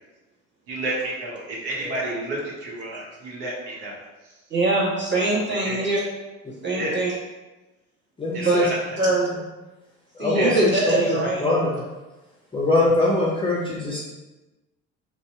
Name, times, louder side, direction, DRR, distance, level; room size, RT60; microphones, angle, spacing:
voice 1, 0.7-4.0 5.5-5.9 6.8-7.0 8.3-8.8 10.3-10.7, right 1 dB, 65° right, -3 dB, 0.9 m, -30 dB
voice 2, 4.5-6.0 6.6-7.1 8.4-8.6 9.0-9.3 10.2-11.5, right 2 dB, 25° right, -6 dB, 1.3 m, -22 dB
voice 3, 8.2-8.7 10.2-11.7 12.5-14.0, left 2 dB, 15° left, -5 dB, 0.6 m, -22 dB
2.7 x 2.1 x 3.4 m, 1.1 s
hypercardioid pair, 65°, 42 cm